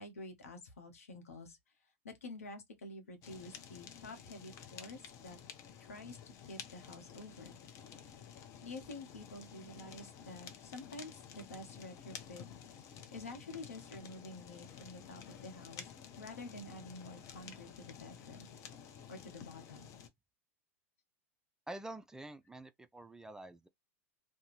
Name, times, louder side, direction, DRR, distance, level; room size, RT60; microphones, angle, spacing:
voice 1, 0.0-1.6 2.0-5.4 5.8-7.6 8.6-12.5 13.1-18.4 19.1-19.9, left 2 dB, 90° left, 0.9 m, -49 dB
Fire, 3.2-20.1, left 8 dB, 45° left, 0.7 m, -52 dB
voice 2, 21.7-23.7, right 2 dB, 10° right, 0.3 m, -47 dB
2.6 x 2.2 x 3.1 m
hypercardioid pair, 100°, 8 cm